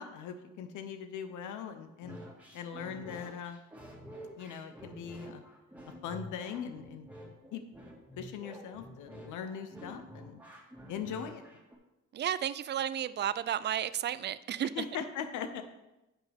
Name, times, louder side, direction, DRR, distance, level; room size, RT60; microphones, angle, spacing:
voice 1, 0.0-2.2 2.5-3.6 4.4-5.4 6.0-7.1 7.5-7.6 8.2-10.4 10.9-11.4 14.7-15.6, left 7 dB, 85° left, 8 dB, 0.8 m, -40 dB
sound 1, 2.0-11.8, equal, 5° right, 1.8 m, -49 dB
voice 2, 12.1-14.8, right 10 dB, 35° right, 16 dB, 0.4 m, -32 dB
10.5 x 6.2 x 3.5 m, 0.97 s
cardioid pair, 90°, 30 cm